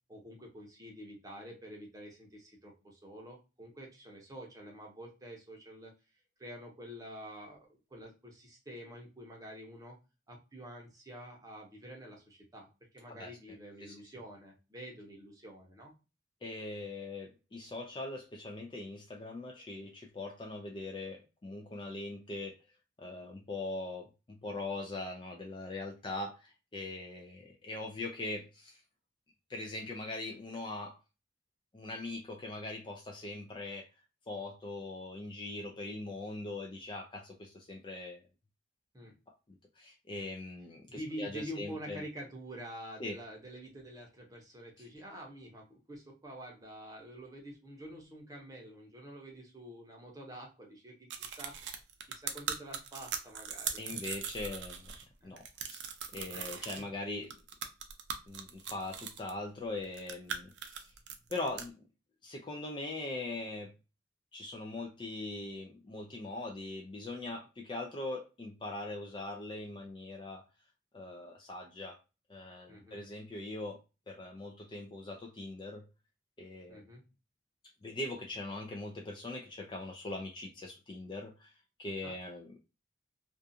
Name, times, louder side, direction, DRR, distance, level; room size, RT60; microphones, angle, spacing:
voice 1, 0.1-5.9 6.4-10.0 10.3-15.9 38.9-39.1 40.1-40.2 40.9-51.6 52.1-54.0 55.2-55.3 56.3-56.9 72.7-73.0 76.7-77.0 82.0-82.2, equal, 20° right, -1 dB, 0.7 m, -47 dB
voice 2, 16.4-22.6 23.0-28.8 29.5-31.0 31.7-33.9 34.3-38.2 39.5-42.0 43.0-43.2 53.8-54.9 55.2-57.3 58.3-60.9 61.3-61.8 62.2-63.7 64.3-70.4 70.9-72.0 72.3-73.8 74.1-75.9 76.4-76.8 77.8-81.5 81.8-82.6, left 2 dB, 25° left, 2 dB, 0.3 m, -41 dB
sound 1, 51.1-55.0 55.4-56.8 57.3-59.3 59.8-61.7, right 7 dB, 65° right, 0.4 m, -40 dB
2.4 x 2.3 x 2.6 m, 0.29 s
head